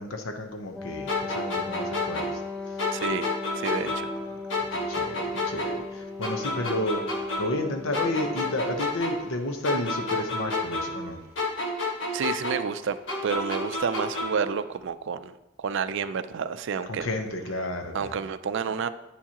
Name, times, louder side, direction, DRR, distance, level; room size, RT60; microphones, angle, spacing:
voice 1, 0.0-2.4 2.7-2.9 3.8-4.0 4.3-4.4 4.7-11.2 16.9-18.2, left 1 dB, 80° left, 5 dB, 0.9 m, -32 dB
Wind instrument woodwind instrument, 0.7-8.8, left 4 dB, 5° left, 0.4 m, -38 dB
sound 1, 1.1-4.2 4.5-7.7 7.9-11.1 11.4-14.5, left 2 dB, 65° left, 1.4 m, -30 dB
voice 2, 2.9-4.1 12.1-13.0 13.2-17.1 17.9-18.9, right 6 dB, 65° right, 12 dB, 0.4 m, -30 dB
9.1 x 7.2 x 2.9 m, 0.94 s
head